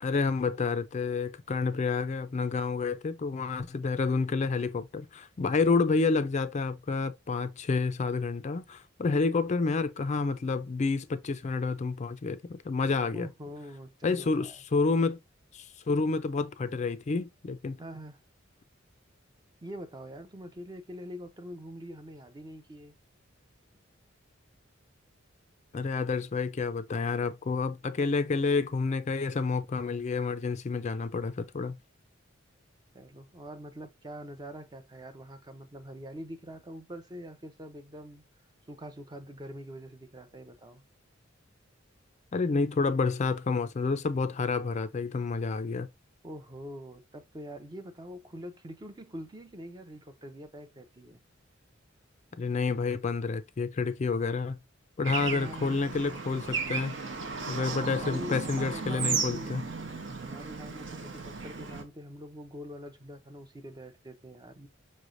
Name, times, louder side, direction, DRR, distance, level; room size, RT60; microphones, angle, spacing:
voice 1, 0.0-13.3 14.0-15.2 15.5-17.8 25.7-31.8 42.3-45.9 52.4-54.6 55.0-57.0 57.5-59.6, left 4 dB, 35° left, 0.4 m, -29 dB
voice 2, 13.1-14.6 17.8-18.2 19.6-22.9 32.9-38.2 38.7-40.8 46.2-51.2 55.2-55.9 57.5-59.6 60.2-64.7, equal, 20° right, 0.5 m, -44 dB
Bird / Traffic noise roadway noise, 55.0-61.8, right 5 dB, 65° right, 0.9 m, -35 dB
5.5 x 3.2 x 2.5 m
head